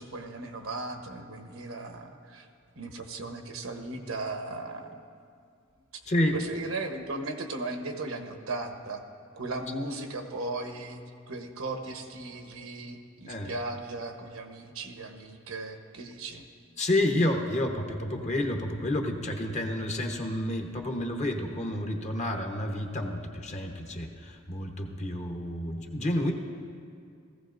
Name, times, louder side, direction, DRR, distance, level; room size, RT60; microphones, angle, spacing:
voice 1, 0.0-2.5 2.7-5.0 6.3-9.0 9.3-11.0 11.3-16.4, right 2 dB, 75° right, 5 dB, 1.0 m, -37 dB
voice 2, 6.1-6.4 13.3-13.5 16.8-26.3, left 1 dB, 35° left, 3 dB, 1.0 m, -30 dB
17.5 x 15.0 x 2.6 m, 2.3 s
head